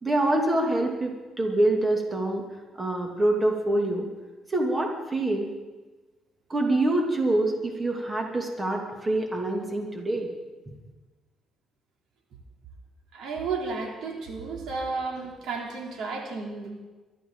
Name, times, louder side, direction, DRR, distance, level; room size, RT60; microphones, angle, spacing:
voice 1, 0.0-2.4 2.8-4.1 4.5-5.5 6.5-10.3, right 1 dB, 25° right, 1 dB, 2.8 m, -25 dB
voice 2, 13.1-16.7, right 4 dB, 80° right, 0 dB, 3.4 m, -32 dB
23.0 x 13.0 x 4.0 m, 1.2 s
cardioid pair, 90°, 0 cm